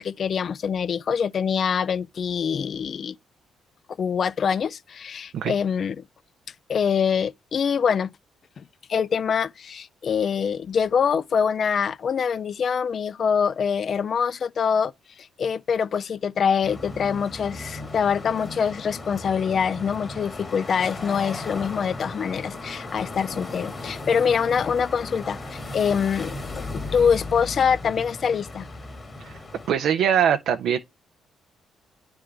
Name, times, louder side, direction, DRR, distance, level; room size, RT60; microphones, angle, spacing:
voice 1, 0.0-3.2 4.0-6.0 6.7-8.1 8.6-8.7 8.9-14.9 15.2-28.7, left 7 dB, 55° left, 0.3 m, -24 dB
sound 1, 16.6-29.7, left 2 dB, 35° left, 1.3 m, -36 dB
voice 2, 29.7-30.8, right 8 dB, 75° right, 0.5 m, -22 dB
9.7 x 3.5 x 3.3 m
cardioid pair, 75°, 0 cm